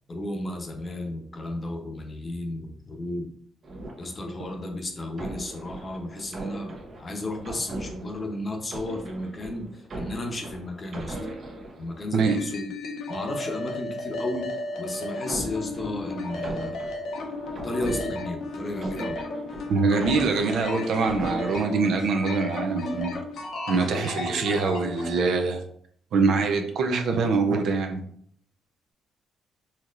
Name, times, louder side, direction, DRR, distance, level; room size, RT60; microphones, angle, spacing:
voice 1, 0.1-3.3 4.0-11.2 11.8-12.7 13.1-14.5 14.8-16.9 17.6-19.2, left 1 dB, 35° left, 3 dB, 0.8 m, -33 dB
sound 1, 3.6-4.6 5.1-12.4 14.3-21.9 22.6-23.4, right 1 dB, 50° right, 0.9 m, -39 dB
sound 2, 12.3-25.1, left 2 dB, 70° left, 0.7 m, -34 dB
voice 2, 19.7-23.1 23.7-25.6 26.1-28.0, right 4 dB, 70° right, 4 dB, 0.5 m, -24 dB
4.3 x 2.9 x 2.5 m, 0.64 s
cardioid pair, 90°, 0 cm